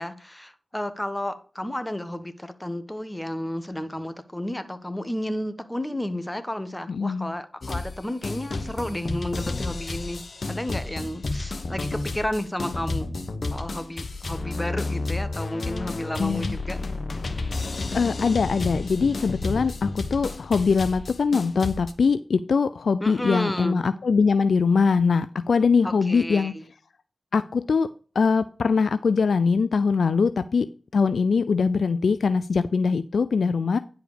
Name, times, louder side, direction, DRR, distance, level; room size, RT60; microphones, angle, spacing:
voice 1, 0.0-10.2 10.5-13.1 13.5-16.8 23.0-23.8 25.8-26.6, left 1 dB, 15° left, 11 dB, 1.3 m, -32 dB
voice 2, 6.9-7.3 16.2-16.6 17.9-26.5 27.3-27.9 28.2-30.7 30.9-33.8, left 5 dB, 80° left, 13 dB, 0.3 m, -22 dB
sound 1, 7.6-8.0 8.2-21.9, left 3 dB, 65° left, 1.2 m, -31 dB
10.0 x 4.9 x 5.0 m, 0.40 s
cardioid pair, 40°, 0 cm